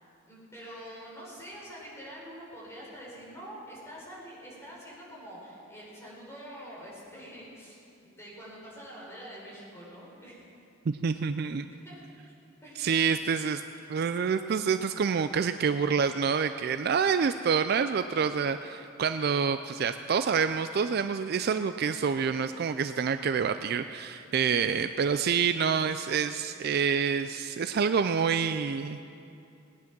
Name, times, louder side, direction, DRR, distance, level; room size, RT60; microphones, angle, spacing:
voice 1, 0.2-10.5 11.7-12.0 12.6-13.0, equal, 15° left, -6 dB, 4.3 m, -46 dB
voice 2, 10.9-11.7 12.8-13.6 13.9-29.0, right 6 dB, 55° right, 10 dB, 0.4 m, -27 dB
18.5 x 9.5 x 6.0 m, 2.6 s
head